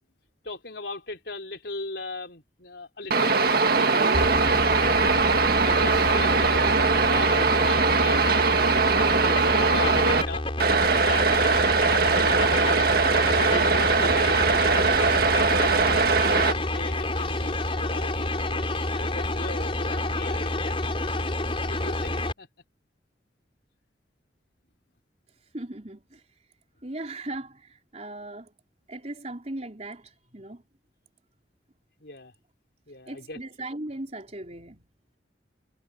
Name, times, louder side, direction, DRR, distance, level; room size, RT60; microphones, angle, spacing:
voice 1, 0.4-4.2 4.7-8.5 9.0-10.5 11.0-12.9 13.3-15.2 15.6-16.0 16.3-21.1 21.7-22.5 32.0-32.3 32.9-33.4, left 2 dB, 65° left, 4.7 m, -38 dB
sound 1, 3.1-10.2 10.6-16.5, right 4 dB, 55° right, 1.7 m, -21 dB
sound 2, 4.1-22.3, left 1 dB, 30° left, 4.2 m, -29 dB
voice 2, 25.5-26.2 26.8-28.5 28.9-30.6 33.1-34.9, right 2 dB, 35° right, 4.4 m, -38 dB
head